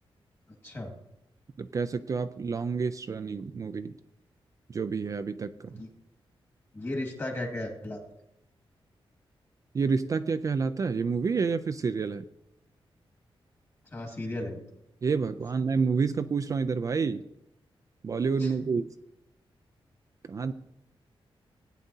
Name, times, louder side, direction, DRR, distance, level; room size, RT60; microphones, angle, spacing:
voice 1, 1.6-3.9 4.7-5.7 9.7-12.2 15.0-17.2 18.0-18.9 20.3-20.5, right 5 dB, 35° right, 10 dB, 0.3 m, -29 dB
voice 2, 6.7-8.0 13.9-14.6 18.4-18.5, left 1 dB, 25° left, 2 dB, 1.9 m, -35 dB
16.0 x 9.1 x 2.7 m, 0.83 s
wide cardioid pair, 170°, 10 cm